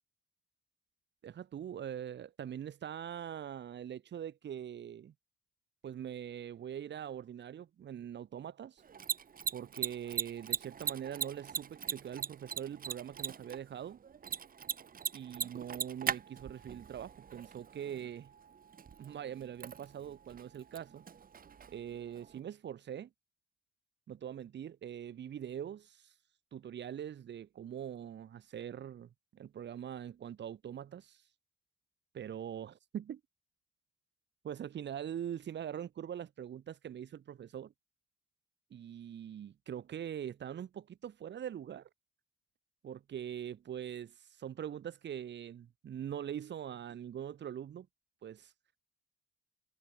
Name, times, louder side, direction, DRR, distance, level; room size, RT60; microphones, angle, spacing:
voice 1, 1.2-5.1 5.8-8.8 9.5-14.0 15.1-18.3 19.0-21.0 21.7-23.1 24.1-26.2 26.5-31.3 32.1-33.2 34.4-37.7 38.7-41.9 42.8-47.9 48.2-48.5, right 9 dB, 60° right, 5.2 m, -43 dB
Mechanisms, 8.8-22.4, right 7 dB, 45° right, 2.4 m, -41 dB
cardioid pair, 90°, 20 cm